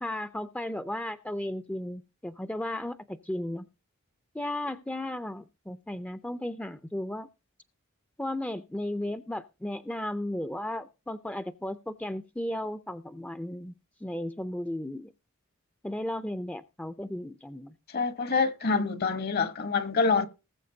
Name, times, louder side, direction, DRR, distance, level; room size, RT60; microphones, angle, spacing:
voice 1, 0.0-3.7 4.3-7.3 8.2-13.7 14.0-15.1 15.8-17.8 18.6-18.9, left 1 dB, 5° left, 0.5 m, -35 dB
voice 2, 17.9-20.3, left 4 dB, 50° left, 1.1 m, -26 dB
20.0 x 7.4 x 2.8 m
head